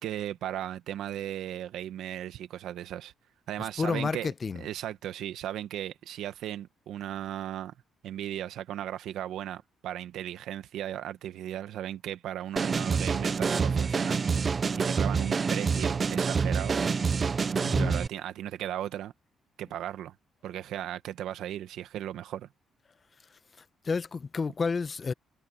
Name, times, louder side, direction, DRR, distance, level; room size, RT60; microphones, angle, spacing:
voice 1, 0.0-3.1 3.5-4.3 4.6-7.7 8.0-16.8 17.7-19.1 19.6-20.1 20.4-22.5, right 11 dB, 80° right, 1.5 m, -36 dB
voice 2, 3.6-4.6 17.6-18.0 23.8-25.1, left 4 dB, 35° left, 0.9 m, -30 dB
sound 1, 12.6-18.1, right 5 dB, 40° right, 0.6 m, -27 dB
cardioid pair, 90°, 0 cm